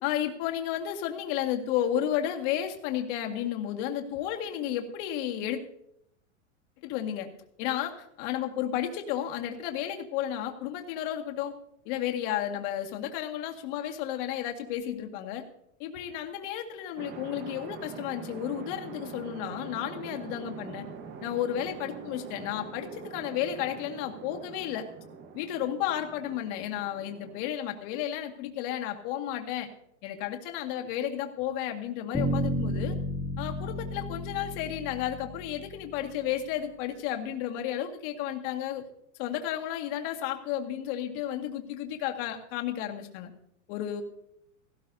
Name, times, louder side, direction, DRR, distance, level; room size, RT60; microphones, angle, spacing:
voice 1, 0.0-5.6 6.8-7.3 7.6-11.5 11.9-15.4 15.8-20.8 21.2-24.9 25.3-29.7 30.0-33.0 33.4-38.9 39.2-43.3 43.7-44.0, left 11 dB, 45° left, 3 dB, 1.9 m, -32 dB
sound 1, 17.0-27.4, right 6 dB, 30° right, 1.2 m, -44 dB
Bass guitar, 32.1-36.2, equal, ahead, 2.2 m, -32 dB
17.5 x 15.0 x 2.7 m, 0.74 s
supercardioid pair, 145°, 37 cm